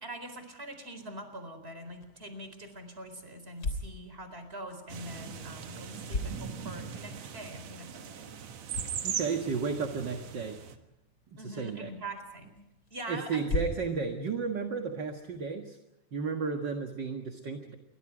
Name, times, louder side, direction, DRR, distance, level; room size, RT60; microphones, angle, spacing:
voice 1, 0.0-8.3 11.4-12.6 12.9-13.4, right 1 dB, 20° right, 8 dB, 4.3 m, -43 dB
sound 1, 1.8-15.4, left 2 dB, 30° left, 3.6 m, -42 dB
sound 2, 4.9-10.8, right 7 dB, 60° right, 2.6 m, -40 dB
voice 2, 9.0-10.6 11.3-11.9 13.1-15.8 16.1-17.7, right 5 dB, 45° right, 4 dB, 1.8 m, -33 dB
29.5 x 23.5 x 5.0 m, 0.90 s
omnidirectional pair, 3.6 m